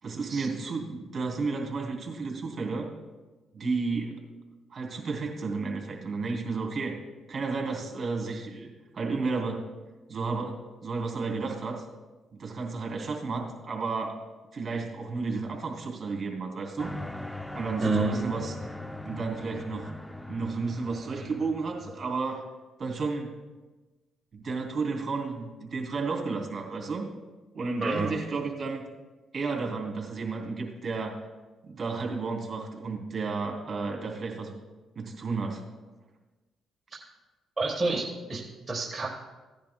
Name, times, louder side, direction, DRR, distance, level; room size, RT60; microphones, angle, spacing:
voice 1, 0.0-2.9 3.5-4.2 4.7-6.9 7.3-9.7 10.1-11.8 12.3-14.2 14.5-16.9 17.5-18.6 19.0-19.9 20.3-22.4 22.8-23.3 24.3-27.1 27.5-28.8 29.3-31.2 31.6-34.6 34.9-35.6, right 4 dB, 40° right, 1 dB, 2.8 m, -32 dB
sound 1, 16.8-22.0, left 1 dB, 5° left, 0.5 m, -40 dB
voice 2, 17.8-18.1 27.8-28.1 36.9-37.0 37.6-38.4 38.7-39.1, right 3 dB, 20° right, -3 dB, 1.3 m, -28 dB
16.0 x 10.5 x 2.2 m, 1.2 s
cardioid pair, 90°, 0 cm